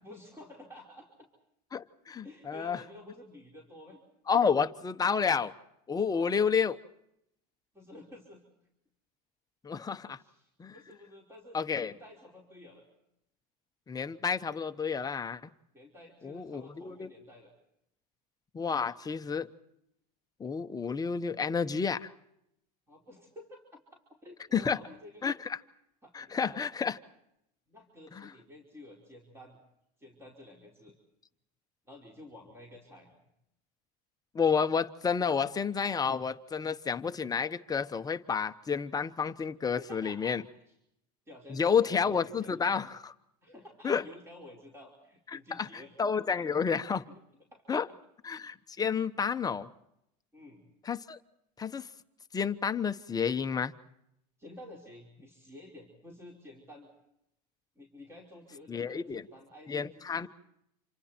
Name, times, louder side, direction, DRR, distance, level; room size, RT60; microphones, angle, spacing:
voice 1, 0.0-1.1 2.2-4.0 6.1-6.3 7.7-8.4 10.2-12.9 15.7-17.5 22.9-23.8 24.2-25.2 26.0-26.7 27.7-29.6 30.0-30.9 31.9-33.1 39.8-40.4 41.3-42.8 43.4-45.9 46.3-46.5 47.1-47.2 47.5-47.8 50.3-50.7 54.4-56.9 57.7-60.3, left 1 dB, 10° right, 5.0 m, -51 dB
voice 2, 1.7-2.8 4.3-5.5 5.9-6.8 9.6-10.2 10.6-10.7 11.5-11.9 13.9-15.4 16.2-17.1 18.5-19.5 20.4-22.1 24.5-24.8 25.2-25.6 26.1-27.0 28.1-28.3 34.3-40.4 41.5-43.1 43.8-44.0 45.3-47.0 47.7-47.9 48.2-49.7 50.8-51.2 51.6-51.9 52.3-53.7 58.7-59.2 59.7-60.3, left 6 dB, 20° left, 1.0 m, -30 dB
30.0 x 27.5 x 4.4 m
supercardioid pair, 125°, 20 cm